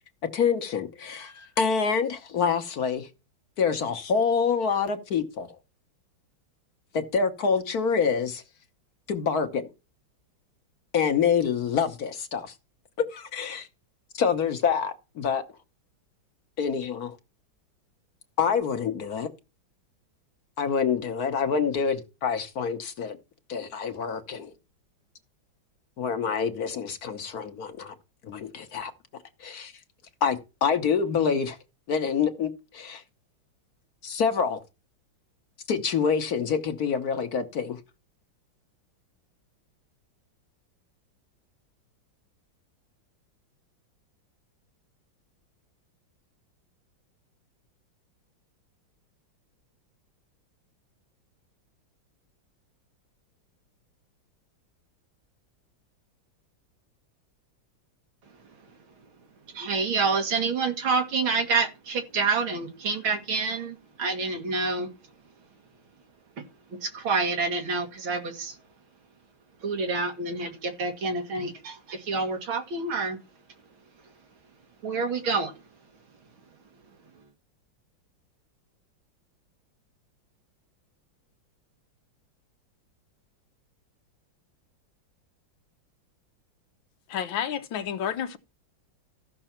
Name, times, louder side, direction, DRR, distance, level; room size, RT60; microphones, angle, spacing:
voice 1, 0.3-3.1 3.6-5.5 6.9-8.4 9.1-9.7 10.9-12.5 13.1-13.7 14.1-15.4 16.6-17.2 18.4-19.3 20.6-23.2 23.5-24.5 26.0-27.9 28.2-28.9 29.4-29.7 30.2-31.6 31.9-33.0 34.0-34.6 35.7-37.8, left 6 dB, 55° left, 1.4 m, -26 dB
voice 2, 59.5-64.9 66.8-68.6 69.6-73.2 74.8-75.5, right 4 dB, 90° right, 2.7 m, -27 dB
voice 3, 87.1-88.4, left 9 dB, 75° left, 1.6 m, -30 dB
14.5 x 6.1 x 4.4 m
omnidirectional pair, 2.2 m